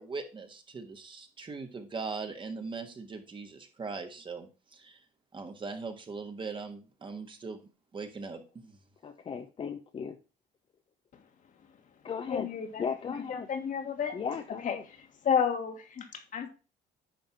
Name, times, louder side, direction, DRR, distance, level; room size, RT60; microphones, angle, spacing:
voice 1, 0.0-5.0 5.3-7.6 7.9-8.8, right 4 dB, 30° right, 5 dB, 1.5 m, -40 dB
voice 2, 9.0-10.2 12.0-12.5 12.8-13.5 14.1-14.8, left 6 dB, 35° left, 6 dB, 0.7 m, -36 dB
voice 3, 12.3-12.9 13.3-14.2 14.6-15.0 15.2-16.5, left 7 dB, 50° left, 6 dB, 1.6 m, -31 dB
10.5 x 3.4 x 5.7 m, 0.33 s
cardioid pair, 110°, 17 cm